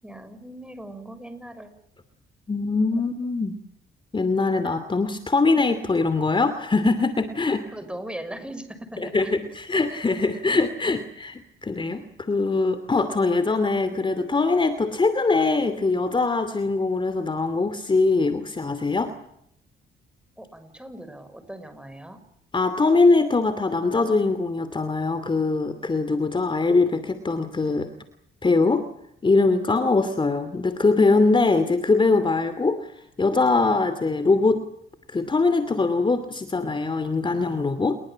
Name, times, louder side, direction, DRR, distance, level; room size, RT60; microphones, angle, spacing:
voice 1, 0.0-1.7 7.7-9.3 20.4-22.2, right 1 dB, 5° right, 10 dB, 6.4 m, -39 dB
voice 2, 2.5-3.6 4.1-7.6 9.0-19.1 22.5-27.9 28.4-28.9 29.2-32.9 33.2-34.7 35.1-38.0, left 3 dB, 25° left, 11 dB, 2.7 m, -22 dB
29.0 x 22.0 x 7.6 m, 0.75 s
cardioid pair, 90°, 20 cm